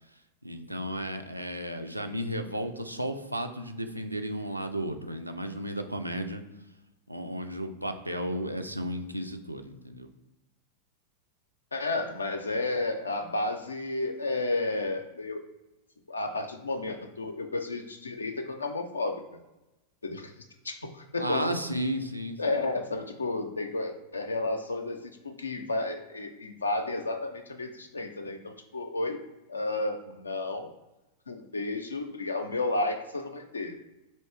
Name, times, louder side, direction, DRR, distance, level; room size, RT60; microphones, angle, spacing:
voice 1, 0.4-6.4 7.1-10.1 21.2-22.4, equal, 85° right, 6 dB, 0.4 m, -33 dB
voice 2, 11.7-15.4 16.1-19.2 20.0-20.3 20.6-21.6 22.4-29.2 29.5-30.7 31.3-33.7, left 2 dB, 75° left, 6 dB, 0.5 m, -32 dB
4.3 x 3.2 x 3.1 m, 1.0 s
figure-of-eight pair, 90°, 0 cm